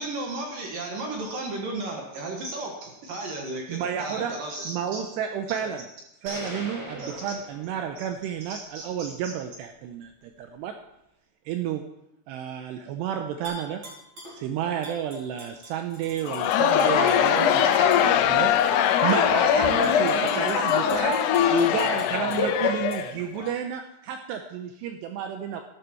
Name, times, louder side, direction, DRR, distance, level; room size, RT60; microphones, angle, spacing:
voice 1, 0.0-5.0 5.5-5.7 6.2-6.4 6.9-7.4 8.0-8.1 8.4-9.3, right 2 dB, 60° right, 0 dB, 2.6 m, -35 dB
voice 2, 3.7-4.3 4.7-5.9 6.2-10.7 11.5-11.8 12.3-13.8 14.3-17.7 18.3-18.6 19.0-21.1 21.5-25.6, right 9 dB, 85° right, 6 dB, 2.5 m, -31 dB
sound 1, 6.3-8.2, equal, 10° right, 3.0 m, -40 dB
Tap / Glass, 13.4-14.4 14.8-17.4 17.9-18.0 18.6-19.2 19.6-22.4 22.9-23.0, right 1 dB, 25° right, 4.6 m, -45 dB
Crowd, 16.2-23.5, left 11 dB, 80° left, 2.8 m, -23 dB
voice 3, 16.5-18.2 18.7-21.7 22.4-22.9, left 5 dB, 50° left, -2 dB, 3.0 m, -25 dB
13.5 x 12.0 x 4.4 m, 0.85 s
omnidirectional pair, 5.6 m